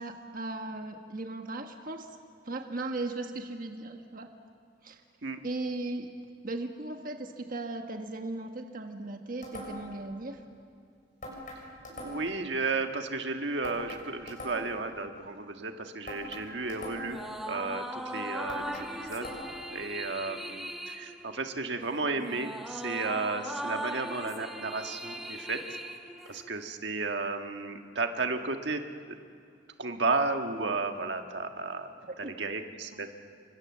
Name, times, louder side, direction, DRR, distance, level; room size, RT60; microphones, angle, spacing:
voice 1, 0.0-2.2 2.4-4.3 4.8-5.0 5.4-6.1 6.4-10.4 32.0-32.4 32.9-33.0, right 2 dB, 50° right, 4 dB, 1.3 m, -37 dB
sound 1, 9.4-10.0 11.2-12.4 13.6-14.9 16.1-17.3 18.5-19.7, left 1 dB, 50° left, 6.9 m, -42 dB
voice 2, 12.0-19.3 19.7-25.6 26.2-29.2 29.8-33.1, right 3 dB, 70° right, 5 dB, 1.5 m, -33 dB
sound 2, 17.0-26.7, equal, ahead, 1.4 m, -39 dB
28.0 x 25.0 x 7.4 m, 2.4 s
head